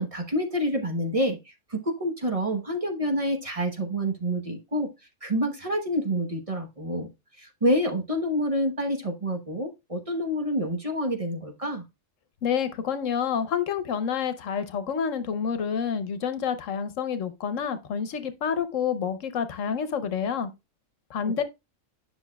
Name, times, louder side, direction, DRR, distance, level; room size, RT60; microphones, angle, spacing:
voice 1, 0.0-1.4 1.7-4.9 5.2-7.1 7.4-11.8 21.2-21.4, equal, 30° right, 1.0 m, -27 dB
voice 2, 12.4-20.5 21.1-21.4, left 7 dB, 80° left, 1.2 m, -28 dB
9.7 x 6.0 x 2.2 m
omnidirectional pair, 1.3 m